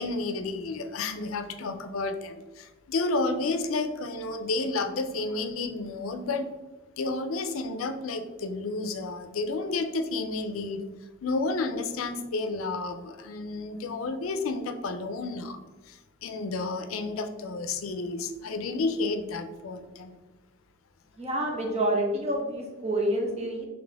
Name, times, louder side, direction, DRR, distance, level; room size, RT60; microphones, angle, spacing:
voice 1, 0.0-6.5 7.0-10.9 11.2-15.6 15.9-20.2, left 3 dB, 85° left, 8 dB, 0.5 m, -31 dB
voice 2, 21.2-23.7, right 1 dB, 30° right, 1 dB, 0.7 m, -28 dB
4.1 x 3.3 x 3.4 m, 1.2 s
head